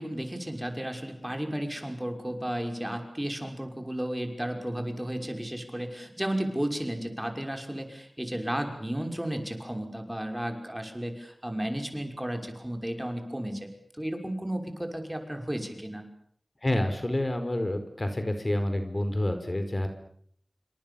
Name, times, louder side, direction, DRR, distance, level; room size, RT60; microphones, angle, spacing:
voice 1, 0.0-16.0, right 1 dB, 15° right, 5 dB, 5.9 m, -33 dB
voice 2, 16.6-19.9, left 1 dB, 40° left, 7 dB, 5.0 m, -28 dB
28.5 x 24.5 x 7.2 m, 0.65 s
cardioid pair, 40°, 0 cm